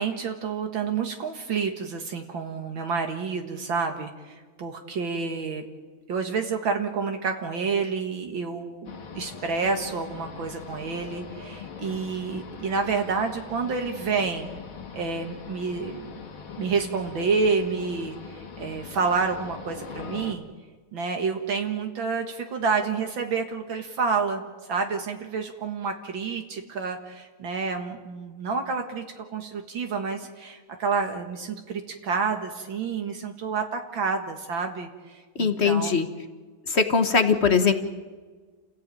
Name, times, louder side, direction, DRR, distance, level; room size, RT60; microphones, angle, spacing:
voice 1, 0.0-5.7 6.1-14.5 14.9-16.1 16.6-20.4 20.9-24.4 24.7-36.0, right 5 dB, 70° right, 4 dB, 2.3 m, -29 dB
sound 1, 8.9-20.3, left 6 dB, 85° left, 3.1 m, -41 dB
voice 2, 35.3-36.1 36.7-37.7, left 5 dB, 35° left, 8 dB, 1.5 m, -21 dB
29.0 x 16.0 x 9.1 m, 1.4 s
omnidirectional pair, 2.2 m